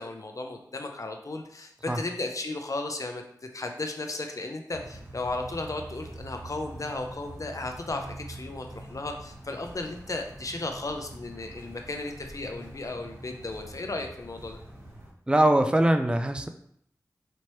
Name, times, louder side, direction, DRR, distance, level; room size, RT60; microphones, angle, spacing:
voice 1, 0.0-3.2 3.5-14.6, left 2 dB, 50° left, 4 dB, 0.6 m, -35 dB
sound 1, 4.7-15.1, right 1 dB, 35° right, 1.3 m, -45 dB
voice 2, 15.3-16.5, right 1 dB, 15° right, 7 dB, 0.3 m, -22 dB
4.2 x 2.9 x 3.1 m, 0.70 s
wide cardioid pair, 50°, 7 cm